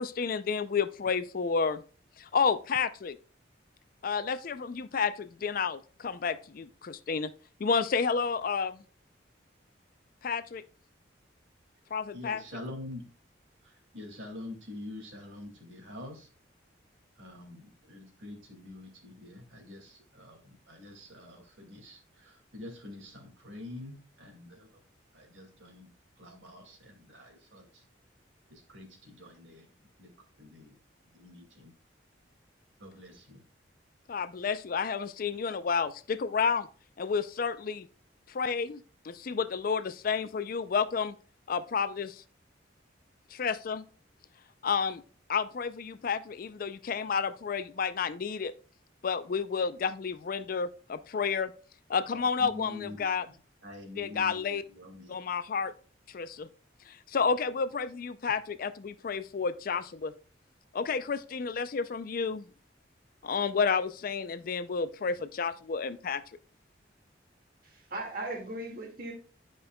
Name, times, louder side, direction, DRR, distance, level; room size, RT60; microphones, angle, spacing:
voice 1, 0.0-1.8 2.2-3.2 4.0-7.3 7.6-8.8 10.2-10.6 11.9-12.4 34.1-36.7 37.0-37.9 38.3-41.2 41.5-42.2 43.3-43.8 44.6-45.0 45.3-48.5 49.0-51.5 51.9-53.3 54.0-54.6 55.1-55.7 56.1-56.5 56.9-60.1 60.7-62.5 63.2-66.2, left 5 dB, 50° left, 0.4 m, -31 dB
voice 2, 12.1-13.0 13.6-16.3 17.2-24.8 25.1-25.9 26.2-27.8 28.5-29.7 30.0-30.1 30.4-30.8 31.1-31.7 32.8-33.4 52.1-53.3 53.6-55.2, left 2 dB, 80° right, 2.2 m, -46 dB
voice 3, 67.6-69.1, right 2 dB, 50° right, 2.0 m, -38 dB
10.5 x 5.2 x 2.2 m
head